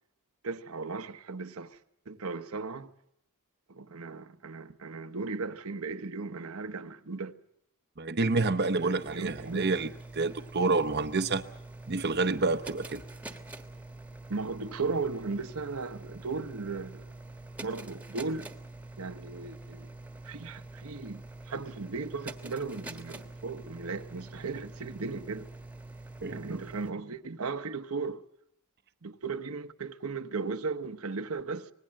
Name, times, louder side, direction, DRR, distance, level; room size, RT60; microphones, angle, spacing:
voice 1, 0.4-1.8 2.1-2.9 3.7-7.4 8.8-9.7 14.3-17.1 17.6-18.5 19.0-19.9 20.2-25.5 26.3-28.2 29.0-31.7, right 4 dB, 75° right, 1.0 m, -36 dB
voice 2, 8.0-9.9 10.1-11.4 11.9-13.0 26.2-26.4, right 3 dB, 50° right, 0.8 m, -28 dB
sound 1, 8.4-26.9, right 2 dB, 5° right, 1.4 m, -46 dB
25.5 x 20.0 x 7.6 m
head